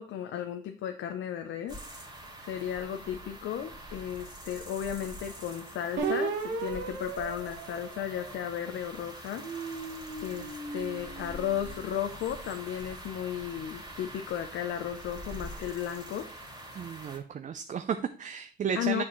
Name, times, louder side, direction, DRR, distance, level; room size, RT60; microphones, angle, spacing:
voice 1, 0.0-1.8 2.4-9.5 10.2-16.2 18.7-19.0, left 10 dB, 80° left, 6 dB, 0.6 m, -34 dB
sound 1, 1.7-17.2, right 1 dB, 20° right, 2.2 m, -45 dB
sound 2, 6.0-8.7 9.2-11.7, right 5 dB, 70° right, 1.3 m, -36 dB
voice 2, 16.8-19.0, right 7 dB, 40° right, 9 dB, 0.4 m, -33 dB
7.3 x 6.0 x 3.0 m, 0.43 s
cardioid pair, 90°, 20 cm